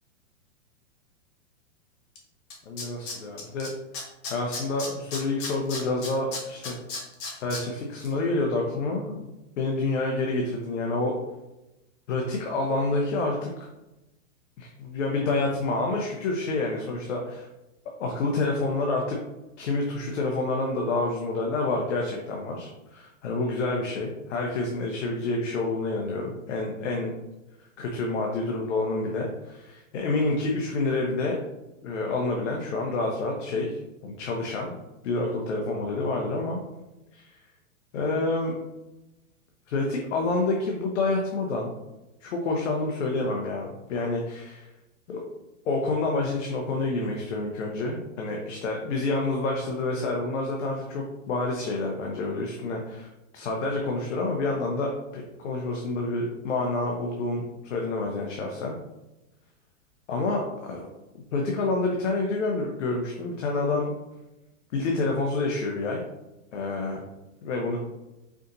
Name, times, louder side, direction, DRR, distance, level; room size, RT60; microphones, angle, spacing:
Tools, 2.2-2.3 2.5-3.7 3.9-7.6 8.0-8.1, left 3 dB, 25° left, 1.0 m, -34 dB
voice 1, 2.7-3.7 4.3-6.8 7.4-9.3 9.6-11.2 12.1-13.5 14.6-17.5 18.0-19.2 19.6-27.1 27.8-31.4 31.8-34.7 35.0-36.6 37.1-37.2 37.9-38.6 39.7-41.7 42.2-44.7 45.1-45.2 45.6-53.1 53.3-58.8 60.1-60.9 61.3-63.9 64.7-66.0 66.5-67.0 67.4-67.8, left 2 dB, 65° left, 0 dB, 0.9 m, -28 dB
4.9 x 3.9 x 2.7 m, 0.98 s
hypercardioid pair, 150°, 39 cm